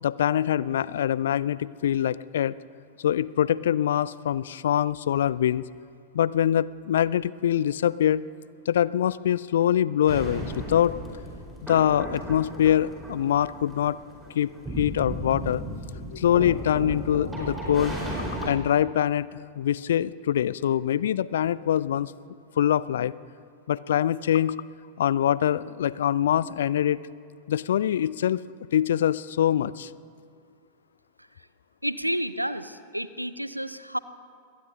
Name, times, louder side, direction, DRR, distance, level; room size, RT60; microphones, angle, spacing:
voice 1, 0.0-2.6 3.0-5.6 6.1-8.2 8.7-10.9 11.6-14.0 14.4-14.5 14.8-15.6 16.1-18.0 18.4-19.3 19.6-22.1 22.6-23.1 23.7-24.6 25.0-27.0 27.5-28.4 28.7-29.9, left 10 dB, 60° left, 20 dB, 0.3 m, -24 dB
Noise & FM Hit, 10.1-18.5, right 1 dB, 10° right, 4.6 m, -35 dB
voice 2, 31.8-34.0, equal, 90° right, 15 dB, 0.5 m, -30 dB
21.5 x 18.0 x 2.8 m, 2.3 s
figure-of-eight pair, 90°, 0 cm